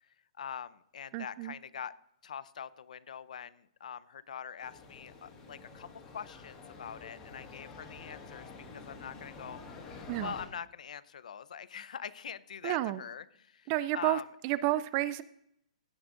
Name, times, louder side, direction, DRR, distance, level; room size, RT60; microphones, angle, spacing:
voice 1, 0.4-1.9 2.2-5.9 6.1-14.2, left 8 dB, 80° left, 18 dB, 0.6 m, -44 dB
voice 2, 1.1-1.5 10.1-10.3 12.6-13.0 13.7-15.2, right 16 dB, 25° right, 18 dB, 0.3 m, -31 dB
sound 1, 4.6-10.5, left 4 dB, 20° left, 2.1 m, -49 dB
16.0 x 6.1 x 3.8 m, 0.75 s
hypercardioid pair, 170°, 4 cm